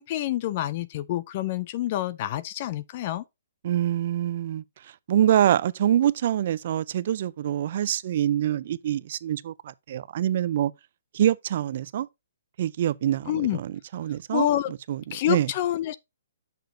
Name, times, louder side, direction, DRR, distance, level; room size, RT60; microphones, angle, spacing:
voice 1, 0.0-3.2 13.3-13.6 14.3-14.7 15.1-16.0, left 13 dB, 40° left, 0.4 m, -27 dB
voice 2, 3.6-4.6 5.1-10.7 11.1-12.1 12.6-14.5 14.9-15.0 15.3-15.5, right 11 dB, 50° right, 0.4 m, -25 dB
6.7 x 6.1 x 2.6 m
hypercardioid pair, 150°, 0 cm